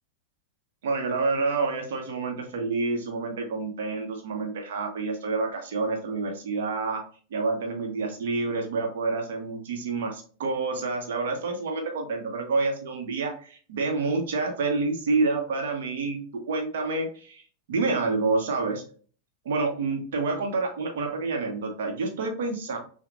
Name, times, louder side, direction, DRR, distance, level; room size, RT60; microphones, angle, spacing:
voice 1, 0.8-7.0 7.3-17.4 17.7-18.8 19.4-22.8, right 3 dB, 60° right, 3 dB, 0.9 m, -28 dB
5.7 x 2.2 x 2.4 m, 0.43 s
figure-of-eight pair, 90°, 0 cm